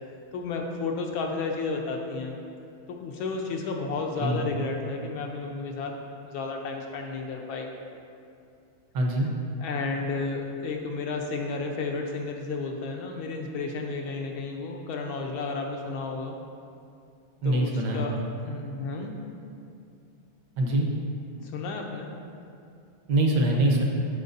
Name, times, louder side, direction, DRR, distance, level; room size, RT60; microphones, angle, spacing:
voice 1, 0.3-2.4 2.9-5.9 6.2-7.7 9.6-16.4 17.4-19.2 21.4-22.1, left 4 dB, 75° left, 1 dB, 1.5 m, -32 dB
voice 2, 8.9-9.3 17.4-18.0 20.6-20.9 23.1-23.8, right 1 dB, 60° right, 0 dB, 1.4 m, -23 dB
13.5 x 4.6 x 2.7 m, 2.5 s
omnidirectional pair, 2.3 m